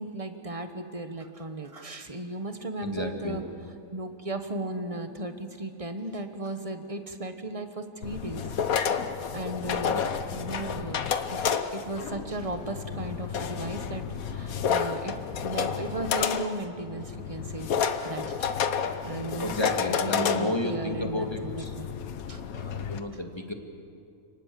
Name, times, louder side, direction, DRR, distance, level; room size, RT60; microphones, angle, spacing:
voice 1, 0.0-3.4 3.9-8.5 9.3-10.0 10.3-11.0 11.3-11.4 11.7-19.5 19.9-21.9 22.3-22.4, right 2 dB, 25° right, 8 dB, 1.4 m, -36 dB
voice 2, 2.8-3.4 9.9-10.1 19.4-21.7 22.5-23.5, left 1 dB, 20° left, 4 dB, 2.0 m, -32 dB
sound 1, 8.0-23.0, left 7 dB, 80° left, 1.5 m, -30 dB
29.5 x 19.0 x 7.6 m, 2.5 s
omnidirectional pair, 1.5 m